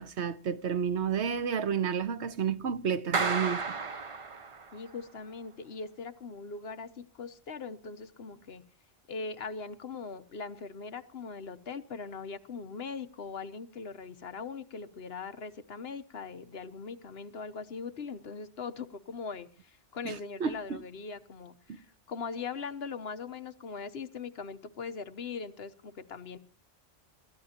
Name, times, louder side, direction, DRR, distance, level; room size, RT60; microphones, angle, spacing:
voice 1, 0.0-3.8 20.0-20.8, right 7 dB, 70° right, 1.2 m, -31 dB
Clapping, 3.1-4.9, right 4 dB, 30° right, 0.8 m, -32 dB
voice 2, 4.7-8.6 9.1-26.4, left 5 dB, 60° left, 1.2 m, -40 dB
27.5 x 13.5 x 2.9 m
omnidirectional pair, 1.2 m